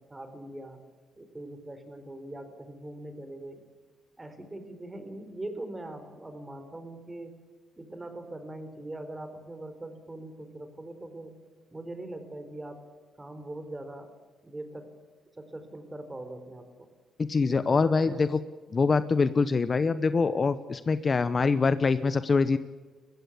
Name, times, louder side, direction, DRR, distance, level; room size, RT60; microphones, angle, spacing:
voice 1, 0.1-0.8 1.2-3.6 4.2-7.4 7.8-11.3 11.7-12.8 13.2-14.1 14.4-14.9 15.4-16.9 17.5-18.3, right 1 dB, 15° right, 8 dB, 4.0 m, -41 dB
voice 2, 17.2-18.3 18.7-22.6, left 4 dB, 35° left, 14 dB, 0.9 m, -24 dB
22.0 x 15.0 x 8.3 m, 1.4 s
cardioid pair, 90°, 0 cm